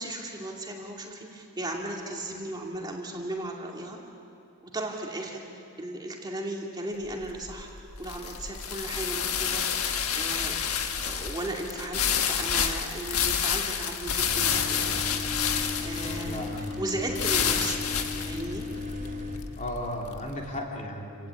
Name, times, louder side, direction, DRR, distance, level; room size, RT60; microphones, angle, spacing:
voice 1, 0.0-4.0 4.7-7.7 8.0-10.6 11.0-14.9 15.6-18.6, right 1 dB, 20° right, -1 dB, 2.4 m, -36 dB
sound 1, 7.0-20.3, left 7 dB, 75° left, 1.5 m, -29 dB
sound 2, 14.3-19.4, left 3 dB, 35° right, 3.3 m, -36 dB
voice 2, 15.9-16.7 17.4-17.5 19.6-21.3, left 1 dB, 35° left, -1 dB, 3.1 m, -35 dB
28.5 x 17.5 x 8.6 m, 2.7 s
head